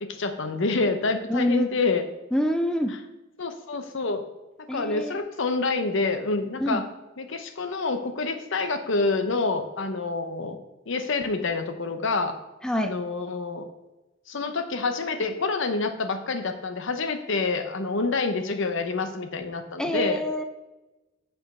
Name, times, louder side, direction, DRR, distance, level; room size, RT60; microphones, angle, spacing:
voice 1, 0.0-2.0 3.4-4.2 4.7-6.8 7.2-10.6 10.9-12.3 12.7-13.7 14.3-20.2, left 3 dB, 65° left, 7 dB, 0.8 m, -27 dB
voice 2, 1.3-1.7 2.3-2.9 4.7-5.2 6.6-6.8 12.6-12.9 19.8-20.4, equal, 5° left, 5 dB, 0.4 m, -26 dB
6.8 x 5.3 x 5.4 m, 1.0 s
head